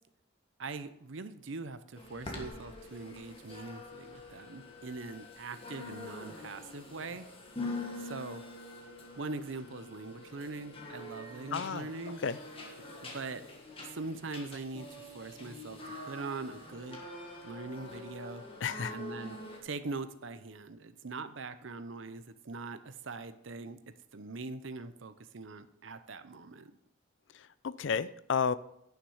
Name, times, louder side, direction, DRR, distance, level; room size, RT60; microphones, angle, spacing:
voice 1, 0.6-7.3 8.0-8.4 9.2-12.2 13.0-13.4 13.8-17.0 17.4-18.4 18.9-19.4 19.6-23.8 24.1-26.7, right 3 dB, 75° right, 12 dB, 0.7 m, -42 dB
sound 1, 2.0-19.6, left 2 dB, 30° left, 1.6 m, -45 dB
voice 2, 11.5-11.9 12.2-12.4 18.6-18.9 27.6-28.5, left 6 dB, 65° left, 17 dB, 0.4 m, -31 dB
10.0 x 6.0 x 5.5 m, 0.76 s
head